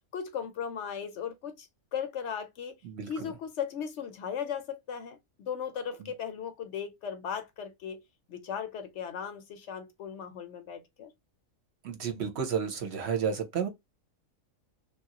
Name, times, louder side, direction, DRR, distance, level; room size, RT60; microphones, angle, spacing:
voice 1, 0.1-2.8 3.1-11.1, left 7 dB, 65° left, 0.8 m, -37 dB
voice 2, 2.8-3.3 6.0-6.1 11.8-13.7, right 7 dB, 60° right, 0.9 m, -32 dB
3.0 x 2.3 x 2.7 m
omnidirectional pair, 1.4 m